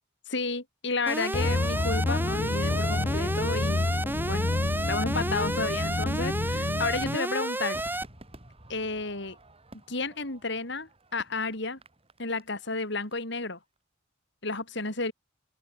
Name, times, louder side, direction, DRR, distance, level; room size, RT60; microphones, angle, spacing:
voice 1, 0.3-4.0 4.3-4.5 4.9-7.8 8.7-9.4 9.9-11.8 12.2-13.6 14.4-15.1, left 3 dB, 65° left, 5.8 m, -32 dB
Alarm, 1.1-8.0, right 1 dB, 10° right, 3.6 m, -31 dB
sound 1, 1.3-7.2, left 2 dB, 40° left, 0.6 m, -29 dB
Crowd / Fireworks, 7.7-13.1 13.4-13.5, right 1 dB, 30° right, 7.6 m, -51 dB
open air
head